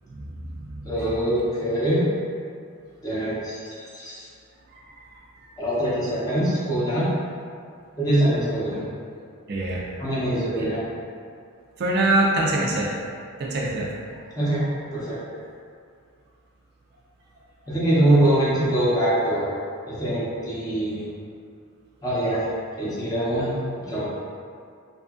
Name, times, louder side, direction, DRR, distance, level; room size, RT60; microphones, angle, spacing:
voice 1, 0.8-2.0 3.0-3.6 3.9-4.2 5.6-7.1 8.0-8.8 10.0-10.8 14.3-14.6 14.9-15.2 17.7-19.5 19.9-21.0 22.0-22.4 22.8-23.5 23.9-24.1, right 1 dB, 15° left, -10 dB, 0.7 m, -23 dB
voice 2, 9.5-9.8 10.6-10.7 11.8-12.9 13.4-13.9, right 2 dB, 45° right, -3 dB, 0.3 m, -23 dB
2.7 x 2.4 x 2.4 m, 2.3 s
head